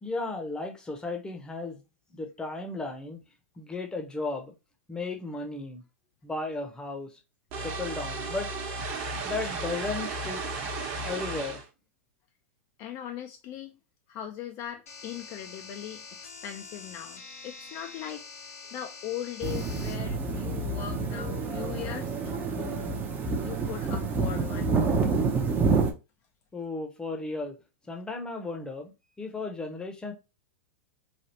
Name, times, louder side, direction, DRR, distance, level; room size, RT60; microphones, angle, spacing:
voice 1, 0.0-1.8 2.1-3.2 3.6-4.5 4.9-5.8 6.2-7.1 7.6-8.5 9.2-10.4 11.0-11.6 26.5-27.6 27.9-30.1, left 3 dB, 10° left, 0.7 m, -35 dB
sound 1, 7.5-11.7, right 3 dB, 40° right, 1.0 m, -34 dB
voice 2, 12.8-13.8 14.1-18.2 18.7-22.9 23.4-24.7, left 10 dB, 40° left, 0.4 m, -39 dB
sound 2, 14.9-19.9, left 5 dB, 80° left, 1.0 m, -45 dB
sound 3, 19.4-25.9, right 4 dB, 25° right, 0.6 m, -28 dB
3.3 x 2.3 x 2.7 m
hypercardioid pair, 115°, 8 cm